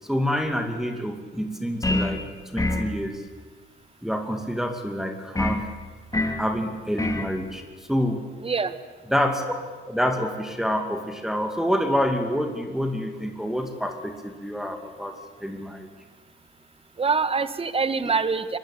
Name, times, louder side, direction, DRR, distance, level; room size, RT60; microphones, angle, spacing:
voice 1, 0.0-3.2 4.0-5.7 6.4-7.6 7.9-8.3 9.1-9.4 9.9-15.2 15.4-15.9, equal, ahead, 4 dB, 2.6 m, -27 dB
sound 1, 1.8-2.2 2.6-2.9 5.4-5.6 6.1-6.4 7.0-7.3, left 2 dB, 15° left, 3.1 m, -25 dB
voice 2, 8.4-8.7 17.0-18.6, right 4 dB, 30° right, 12 dB, 1.6 m, -25 dB
24.0 x 21.5 x 8.6 m, 1.4 s
cardioid pair, 90°, 20 cm